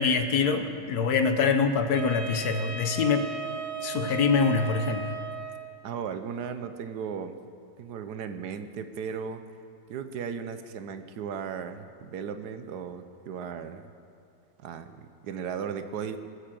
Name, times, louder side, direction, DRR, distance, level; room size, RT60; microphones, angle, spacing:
voice 1, 0.0-3.4 3.8-5.1, left 5 dB, 75° left, 8 dB, 1.5 m, -25 dB
Wind instrument woodwind instrument, 1.9-5.8, right 5 dB, 35° right, 2.1 m, -36 dB
voice 2, 5.8-7.4 7.8-9.4 9.9-13.9 14.6-16.2, right 7 dB, 85° right, 9 dB, 1.4 m, -36 dB
21.0 x 8.3 x 7.6 m, 2.4 s
omnidirectional pair, 1.7 m